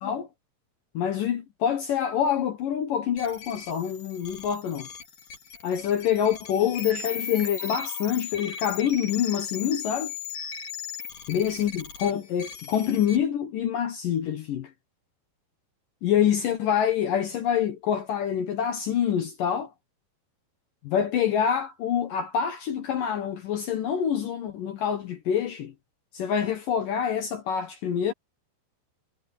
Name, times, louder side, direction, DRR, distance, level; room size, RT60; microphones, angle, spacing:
voice 1, 0.9-4.9 5.6-10.1 11.3-14.7 16.0-19.7 20.8-25.7 26.1-28.1, left 9 dB, 70° left, 2.1 m, -26 dB
sound 1, 3.2-13.2, left 7 dB, 45° left, 4.0 m, -38 dB
omnidirectional pair, 5.5 m